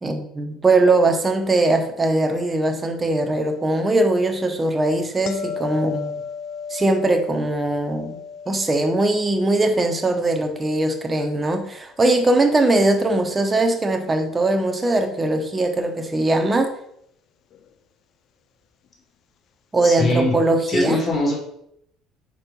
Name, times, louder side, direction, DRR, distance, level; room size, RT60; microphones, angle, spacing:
voice 1, 0.0-6.1 6.7-8.2 8.5-16.7 19.7-21.0, right 2 dB, 20° right, 5 dB, 1.0 m, -20 dB
sound 1, 5.3-12.3 17.5-17.7, left 6 dB, 55° left, 0.4 m, -36 dB
voice 2, 19.8-20.3 20.7-21.4, left 1 dB, 30° left, -1 dB, 2.1 m, -21 dB
4.5 x 4.4 x 5.3 m, 0.73 s
cardioid pair, 110°, 0 cm